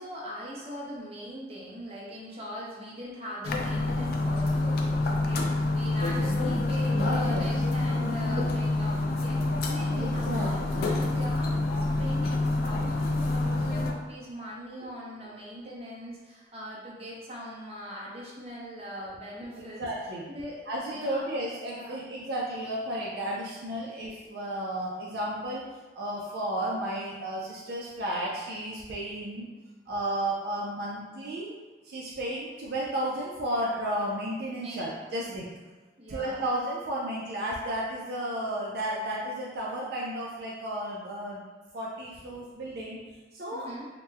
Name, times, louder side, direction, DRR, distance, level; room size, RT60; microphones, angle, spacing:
voice 1, 0.0-21.4 21.7-22.1 34.6-34.9 35.2-35.4 36.0-36.4 43.5-43.9, equal, 35° right, -5 dB, 0.7 m, -41 dB
sound 1, 3.4-13.9, left 2 dB, 55° left, 0.3 m, -27 dB
voice 2, 6.9-7.5 8.4-8.5 9.9-10.5 14.8-14.9 19.6-20.3 20.7-25.6 25.9-29.5 29.9-31.5 31.8-35.5 36.1-41.4 41.7-43.0 43.3-43.7, right 1 dB, 65° right, -5 dB, 0.4 m, -33 dB
2.9 x 2.1 x 3.4 m, 1.2 s
head